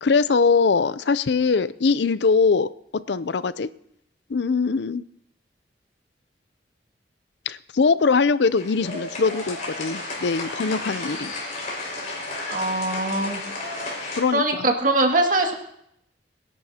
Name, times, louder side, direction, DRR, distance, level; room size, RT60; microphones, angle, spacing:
voice 1, 0.0-2.7 3.1-3.7 4.3-5.0 7.5-11.3 14.2-14.6, left 4 dB, 75° left, 15 dB, 0.5 m, -22 dB
sound 1, 8.5-14.2, left 2 dB, 45° left, 5.4 m, -33 dB
voice 2, 12.5-13.4 14.3-15.5, right 2 dB, 45° right, 2 dB, 2.1 m, -22 dB
26.0 x 11.0 x 2.9 m, 0.74 s
head